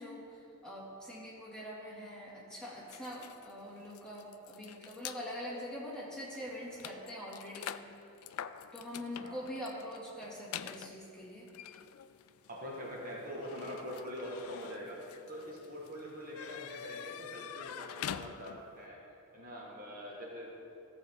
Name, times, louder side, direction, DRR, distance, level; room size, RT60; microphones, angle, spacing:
voice 1, 0.0-7.7 8.7-11.5, equal, 5° left, -7 dB, 2.0 m, -44 dB
sound 1, 2.9-5.2 5.9-6.1 6.3-18.8, left 9 dB, 75° left, 0.3 m, -46 dB
voice 2, 12.4-15.0 15.3-19.0 19.3-20.5, equal, 40° right, -4 dB, 1.3 m, -44 dB
14.5 x 7.0 x 3.5 m, 2.7 s
head